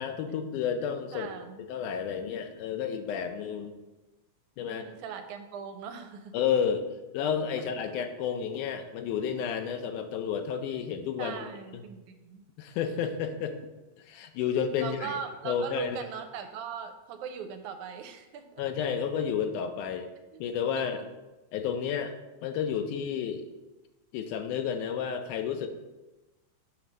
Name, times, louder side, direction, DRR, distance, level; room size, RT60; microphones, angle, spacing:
voice 1, 0.0-1.3 1.7-3.8 4.6-4.8 6.3-6.8 7.1-11.4 11.7-11.8 12.6-13.5 14.0-15.1 15.5-16.0 18.6-20.1 20.4-21.0 21.5-22.1 22.4-23.5 24.1-25.7, left 7 dB, 85° left, 7 dB, 2.1 m, -31 dB
voice 2, 1.1-1.6 4.6-6.4 11.2-12.4 14.8-18.8 20.3-20.4 20.8-21.1, right 7 dB, 80° right, 7 dB, 1.9 m, -40 dB
7.5 x 3.1 x 6.1 m, 1.1 s
omnidirectional pair, 3.5 m